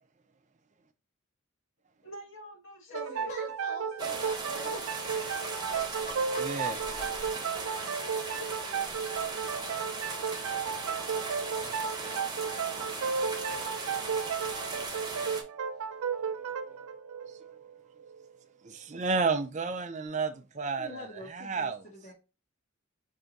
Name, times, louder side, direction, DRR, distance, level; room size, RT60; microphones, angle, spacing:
voice 1, 2.0-3.3 7.8-8.9, left 1 dB, 65° left, 1.7 m, -48 dB
voice 2, 2.9-4.8 5.4-6.7 6.9-7.0 20.8-22.1, left 1 dB, 35° left, 1.0 m, -44 dB
sound 1, 2.9-18.3, right 6 dB, 90° right, 0.4 m, -34 dB
sound 2, 4.0-15.4, right 3 dB, 20° right, 0.8 m, -38 dB
voice 3, 6.4-6.8 18.6-21.8, right 4 dB, 35° right, 0.5 m, -31 dB
4.6 x 2.7 x 3.9 m
head